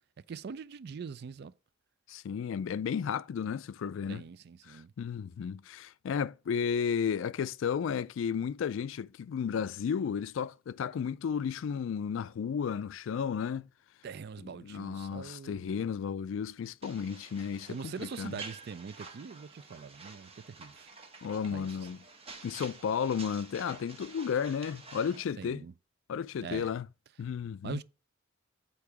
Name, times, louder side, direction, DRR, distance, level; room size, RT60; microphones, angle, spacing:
voice 1, 0.3-1.5 4.1-4.9 14.0-15.9 17.7-20.9 21.4-21.7 25.4-25.7 26.4-26.7 27.6-27.8, right 5 dB, 55° right, 0.4 m, -43 dB
voice 2, 2.1-4.2 4.7-13.7 14.4-18.4 21.2-22.0 22.4-25.6 26.1-26.9 27.2-27.8, left 7 dB, 70° left, 0.3 m, -33 dB
sound 1, 16.8-25.3, right 4 dB, 30° right, 1.0 m, -49 dB
8.4 x 2.9 x 4.6 m
head